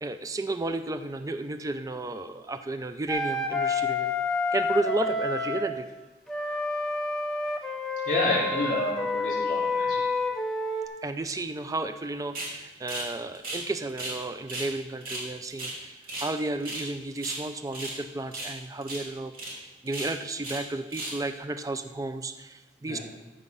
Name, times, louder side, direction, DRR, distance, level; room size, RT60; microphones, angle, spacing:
voice 1, 0.0-4.1 4.5-5.9 11.0-23.0, right 2 dB, 20° right, 10 dB, 0.4 m, -33 dB
Wind instrument woodwind instrument, 3.1-5.7 6.3-10.9, left 3 dB, 5° left, 0.8 m, -29 dB
voice 2, 8.1-10.0 22.9-23.0, left 2 dB, 45° left, -5 dB, 4.1 m, -28 dB
sound 1, 12.3-12.5 12.9-13.1 13.3-14.2 14.5-14.7 15.0-16.3 16.6-16.9 17.1-18.0 18.3-18.6 18.8-19.0 19.3-19.5 19.9-20.6 20.9-21.2, right 2 dB, 50° right, 2.6 m, -35 dB
13.5 x 5.0 x 5.5 m, 1.1 s
head